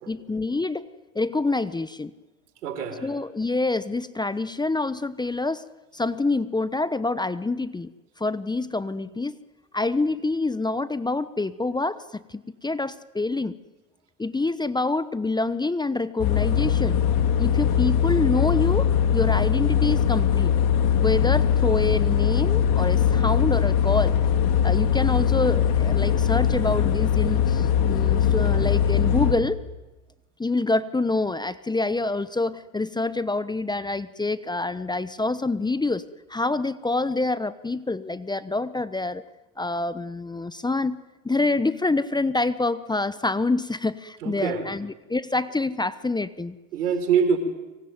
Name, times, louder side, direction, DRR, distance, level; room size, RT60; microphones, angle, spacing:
voice 1, 0.1-0.8 1.1-2.1 3.0-5.6 5.9-9.4 9.7-13.5 14.2-17.0 17.4-20.5 21.0-24.2 24.6-29.6 30.4-36.0 36.3-39.2 39.6-41.0 41.2-46.6, left 3 dB, 10° left, 15 dB, 1.0 m, -26 dB
voice 2, 2.6-3.1 44.2-44.7 46.7-47.4, right 7 dB, 85° right, 9 dB, 4.8 m, -24 dB
sound 1, 16.2-29.3, left 8 dB, 50° left, 3.7 m, -21 dB
25.5 x 24.0 x 9.4 m, 1.1 s
hypercardioid pair, 95°, 44 cm